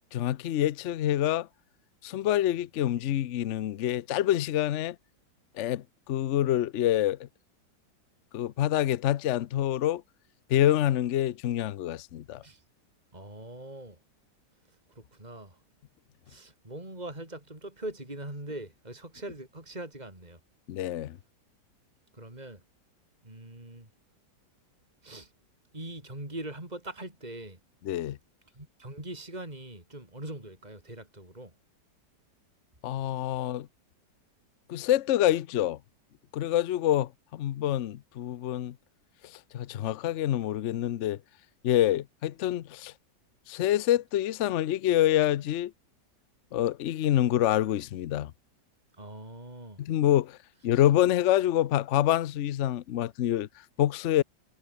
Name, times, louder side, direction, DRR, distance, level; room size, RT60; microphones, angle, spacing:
voice 1, 0.1-1.5 2.0-5.0 5.6-7.3 8.3-10.0 10.5-12.4 20.7-21.2 27.8-28.2 32.8-33.7 34.7-35.8 36.3-38.7 39.5-41.2 41.6-42.9 43.5-45.7 46.5-48.3 49.8-50.4 50.6-53.5 53.8-54.2, left 12 dB, 60° left, 0.7 m, -26 dB
voice 2, 13.1-14.0 15.0-15.6 16.3-20.4 22.1-22.6 23.2-23.9 25.0-25.3 25.7-27.6 28.5-31.5 49.0-49.8, right 1 dB, 20° right, 5.7 m, -42 dB
omnidirectional pair, 1.9 m